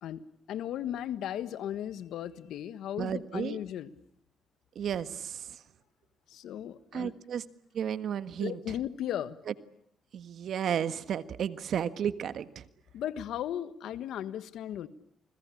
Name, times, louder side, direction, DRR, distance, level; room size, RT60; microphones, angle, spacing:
voice 1, 0.0-3.9 6.3-7.1 8.4-9.4 12.9-14.9, left 11 dB, 80° left, 14 dB, 1.5 m, -36 dB
voice 2, 3.0-3.6 4.7-5.6 6.9-7.4 7.7-8.6 10.1-12.6, right 8 dB, 65° right, 13 dB, 1.5 m, -33 dB
29.0 x 21.5 x 8.6 m, 0.70 s
cardioid pair, 75°, 0 cm